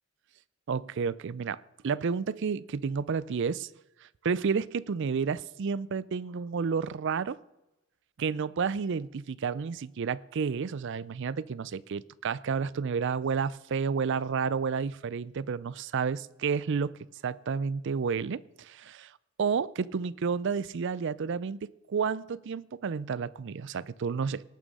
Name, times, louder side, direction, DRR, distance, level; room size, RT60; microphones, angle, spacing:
voice 1, 0.7-3.7 4.0-7.4 8.2-19.1 19.4-24.4, right 5 dB, 60° right, 0.4 m, -31 dB
19.0 x 6.4 x 5.3 m
head